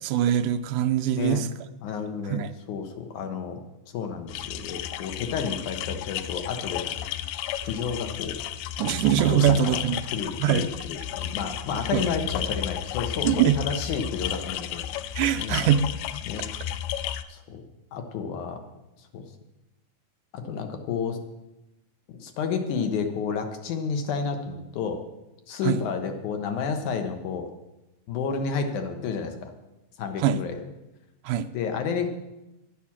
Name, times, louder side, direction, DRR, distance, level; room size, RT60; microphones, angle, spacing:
voice 1, 0.0-1.5 2.2-2.6 8.8-10.0 10.4-10.7 11.9-12.1 13.2-13.6 15.2-15.9 25.6-25.8 30.2-30.4 31.2-31.5, right 10 dB, 80° right, 7 dB, 2.0 m, -23 dB
voice 2, 1.8-3.6 3.9-7.0 7.6-8.4 9.3-9.8 10.1-14.9 15.4-15.6 16.3-16.5 17.3-17.6 17.9-18.6 19.1-19.2 20.3-21.2 22.1-25.0 25.5-27.5 28.1-29.5 30.0-30.6 31.5-32.1, left 6 dB, 70° left, 6 dB, 2.5 m, -31 dB
sound 1, 4.3-17.2, left 11 dB, 90° left, 2.2 m, -33 dB
11.0 x 9.4 x 7.3 m, 0.98 s
omnidirectional pair, 3.7 m